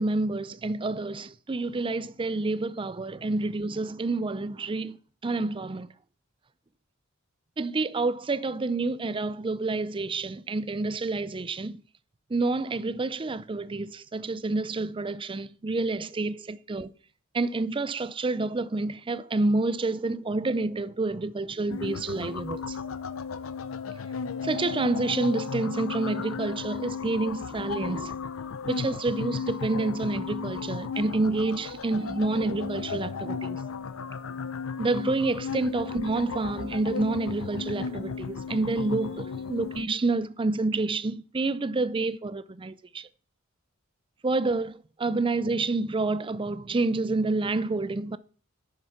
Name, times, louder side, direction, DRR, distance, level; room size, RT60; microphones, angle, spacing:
voice 1, 0.0-5.0 5.2-5.9 7.6-11.8 12.3-16.9 17.3-22.8 24.4-28.2 28.7-33.6 34.8-43.1 44.2-48.2, right 3 dB, 25° right, 0.5 m, -28 dB
sound 1, 21.7-39.8, left 5 dB, 85° left, 0.6 m, -35 dB
11.0 x 6.7 x 5.8 m
head